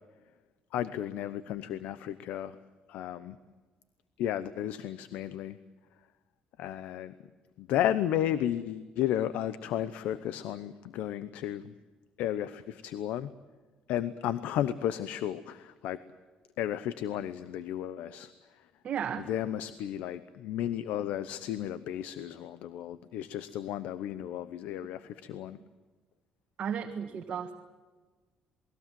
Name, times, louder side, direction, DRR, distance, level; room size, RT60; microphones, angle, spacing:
voice 1, 0.7-2.6 2.9-3.4 4.2-5.6 6.6-7.1 7.6-11.7 12.2-13.3 13.9-16.0 16.6-18.3 19.3-25.6, left 11 dB, 85° left, 14 dB, 0.9 m, -33 dB
voice 2, 18.8-19.3 26.6-27.6, right 8 dB, 45° right, 3 dB, 1.7 m, -34 dB
28.0 x 20.5 x 7.7 m, 1.3 s
cardioid pair, 145°, 3 cm